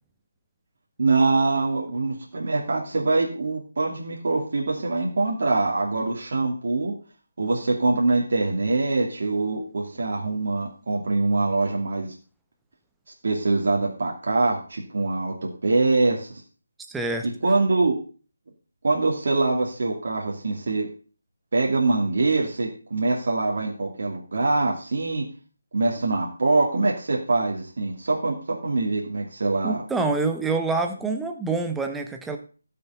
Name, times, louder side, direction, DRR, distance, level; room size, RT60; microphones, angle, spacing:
voice 1, 1.0-6.9 7.4-12.1 13.2-16.4 17.2-18.0 18.8-20.9 21.5-25.3 25.7-29.8, right 3 dB, 50° right, -2 dB, 2.6 m, -24 dB
voice 2, 16.9-17.3 29.6-32.4, right 3 dB, 5° right, 4 dB, 0.9 m, -26 dB
18.0 x 6.9 x 4.0 m, 0.38 s
figure-of-eight pair, 155°, 0 cm